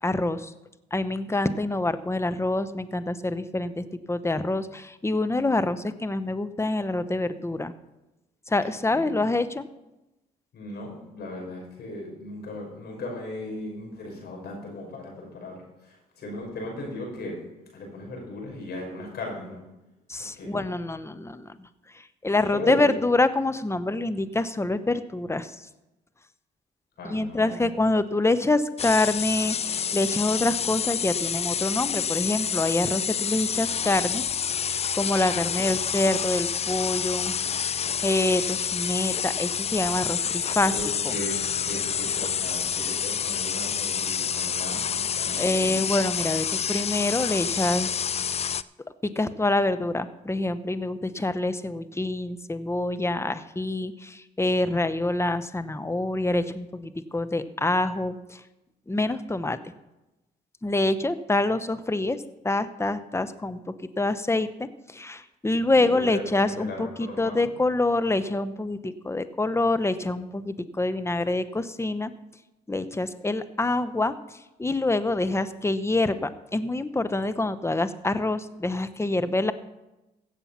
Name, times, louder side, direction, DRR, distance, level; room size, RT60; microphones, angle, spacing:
voice 1, 0.0-0.5 0.9-7.7 8.5-9.7 20.1-21.7 21.9-25.7 27.0-34.2 34.6-37.3 38.0-40.8 41.0-41.1 45.4-48.0 49.0-58.4 58.9-59.6 60.6-63.6 64.0-72.1 72.7-79.5, left 2 dB, 15° left, 11 dB, 1.0 m, -26 dB
voice 2, 8.9-9.2 10.5-17.4 17.7-19.6 20.2-20.5 22.5-22.9 27.0-27.7 40.7-45.8 65.7-67.4, left 2 dB, 60° left, 0 dB, 6.0 m, -37 dB
sound 1, 28.8-48.6, left 7 dB, 35° left, 0.5 m, -28 dB
16.0 x 7.5 x 5.8 m, 0.96 s
supercardioid pair, 60°, 19 cm